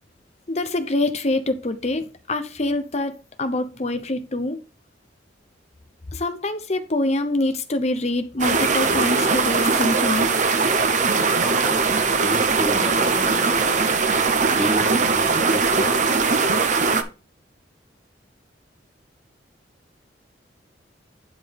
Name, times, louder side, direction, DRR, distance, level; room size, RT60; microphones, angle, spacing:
voice 1, 0.5-3.1 3.4-4.6 6.1-10.3, left 2 dB, 35° left, 0.9 m, -25 dB
sound 1, 8.4-17.0, right 4 dB, 40° right, 0.8 m, -20 dB
voice 2, 11.4-13.8 14.6-16.2, right 1 dB, ahead, 1.7 m, -31 dB
11.0 x 4.5 x 3.5 m
head